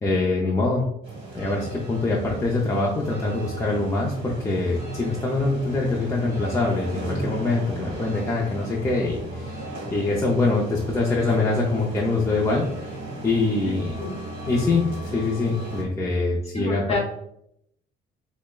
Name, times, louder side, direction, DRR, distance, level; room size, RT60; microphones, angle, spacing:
voice 1, 0.0-0.9 1.3-9.6 9.9-12.9 13.2-14.0 14.5-17.0, left 3 dB, 15° left, -3 dB, 0.6 m, -24 dB
sound 1, 1.0-15.8, right 2 dB, 35° right, 1.4 m, -36 dB
voice 2, 13.6-14.1 16.5-17.0, left 4 dB, 35° left, 1 dB, 1.0 m, -29 dB
5.8 x 2.1 x 2.3 m, 0.74 s
cardioid pair, 110°, 17 cm